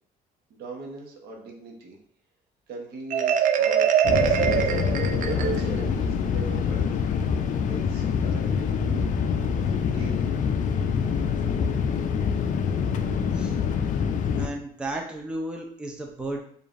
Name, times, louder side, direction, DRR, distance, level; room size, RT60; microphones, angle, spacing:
voice 1, 0.5-2.0 2.7-4.7 5.3-7.0 7.6-9.1 9.8-10.3, right 3 dB, 70° right, 0 dB, 1.0 m, -40 dB
Marimba xylophone, 3.1-5.9, right 8 dB, 50° right, 0.4 m, -23 dB
sound 1, 4.0-14.5, left 6 dB, 50° left, 0.4 m, -25 dB
voice 2, 14.4-16.4, right 1 dB, 5° right, 1 dB, 0.5 m, -33 dB
4.9 x 2.5 x 2.5 m, 0.63 s
cardioid pair, 110°, 17 cm